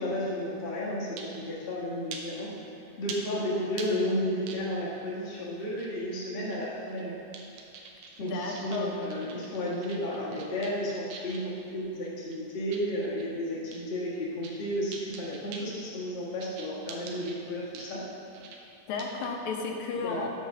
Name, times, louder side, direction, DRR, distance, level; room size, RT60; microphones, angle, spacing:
voice 1, 0.0-2.5 3.0-7.1 8.2-18.0 20.0-20.3, equal, 60° left, -6 dB, 0.6 m, -32 dB
sound 1, 1.2-1.4 2.1-2.2 3.1-3.2 3.8-3.9 4.5-4.9 5.6-5.9 6.4-7.1 7.3-11.5 12.0-13.3 13.7-13.8 14.2-14.6 14.9-15.7 16.4-17.3 17.7-18.0 18.3-18.6 19.0-19.3, right 5 dB, 80° right, 1.4 m, -44 dB
voice 2, 8.2-8.9 18.9-20.3, left 4 dB, 85° left, 2 dB, 2.1 m, -33 dB
7.1 x 4.1 x 6.5 m, 2.7 s
omnidirectional pair, 3.3 m